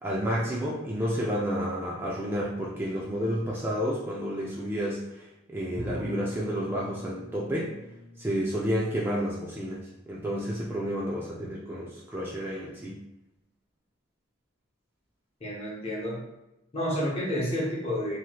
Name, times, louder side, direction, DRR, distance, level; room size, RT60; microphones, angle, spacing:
voice 1, 0.0-5.0 5.5-7.7 8.2-9.8 10.1-13.0, equal, 10° right, -5 dB, 0.3 m, -30 dB
Bowed string instrument, 5.8-10.6, equal, 30° right, 0.7 m, -43 dB
voice 2, 15.4-16.2 16.7-18.2, equal, 30° left, -4 dB, 0.8 m, -30 dB
3.1 x 2.8 x 2.3 m, 0.90 s
head